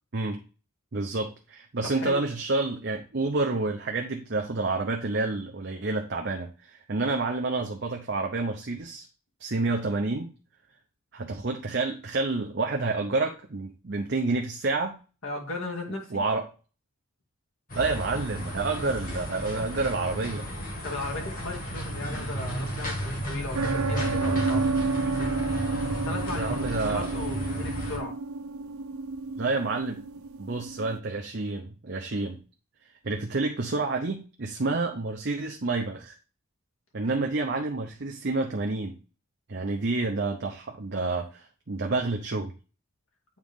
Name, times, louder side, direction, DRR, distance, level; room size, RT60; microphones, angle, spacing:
voice 1, 0.9-9.1 9.4-10.3 11.1-15.0 16.1-16.5 17.7-20.5 26.3-27.1 29.4-30.0 30.4-32.4 33.0-36.1 36.9-38.9 39.5-42.5, right 3 dB, 50° right, 3 dB, 0.7 m, -29 dB
voice 2, 1.8-2.3 15.2-16.2 20.8-24.7 26.0-28.1 37.2-37.3, left 2 dB, 65° left, -1 dB, 2.3 m, -36 dB
sound 1, 17.7-28.0, equal, 40° left, 1.8 m, -33 dB
sound 2, 23.5-31.0, right 3 dB, 80° right, 0.5 m, -30 dB
8.9 x 3.8 x 3.6 m, 0.34 s
head